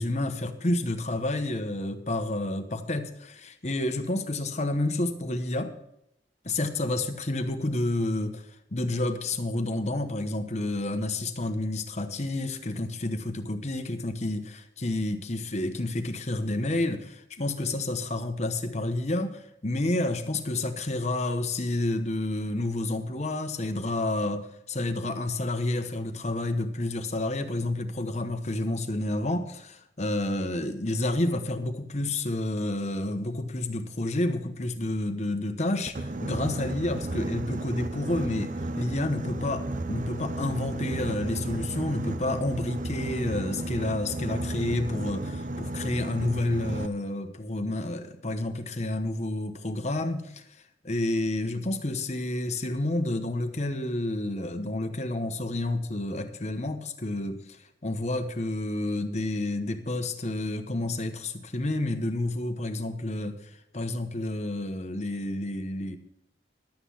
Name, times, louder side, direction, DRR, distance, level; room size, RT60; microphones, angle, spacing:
voice 1, 0.0-5.7 6.4-50.4 50.8-57.6 57.8-66.0, left 2 dB, 40° left, 8 dB, 1.0 m, -30 dB
Boat Water vehicle, 35.9-46.9, right 2 dB, 45° right, 0.6 m, -33 dB
11.5 x 8.3 x 5.6 m, 0.80 s
head